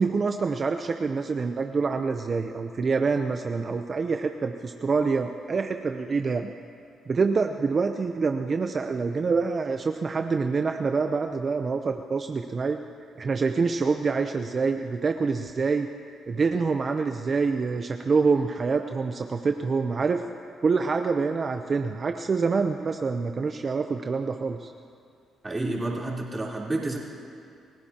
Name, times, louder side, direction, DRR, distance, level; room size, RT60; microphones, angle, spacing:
voice 1, 0.0-6.5 7.1-12.8 13.2-15.9 16.3-20.2 20.6-24.7, right 4 dB, 40° right, 6 dB, 0.7 m, -26 dB
voice 2, 25.4-27.0, right 2 dB, 20° right, -4 dB, 3.7 m, -29 dB
29.5 x 16.5 x 2.9 m, 2.4 s
cardioid pair, 90°, 0 cm